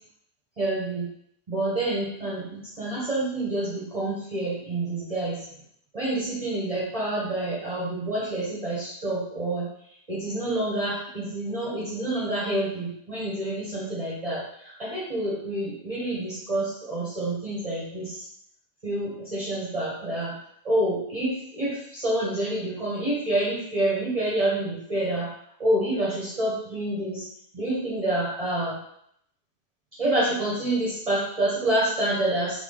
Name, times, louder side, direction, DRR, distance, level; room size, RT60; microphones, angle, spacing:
voice 1, 0.6-1.1 1.5-5.4 5.9-9.7 10.1-18.2 18.8-20.3 20.6-25.3 25.6-27.3 27.5-28.8 30.0-32.6, right 1 dB, 35° right, -7 dB, 1.3 m, -28 dB
3.7 x 3.5 x 3.8 m, 0.70 s
omnidirectional pair, 1.0 m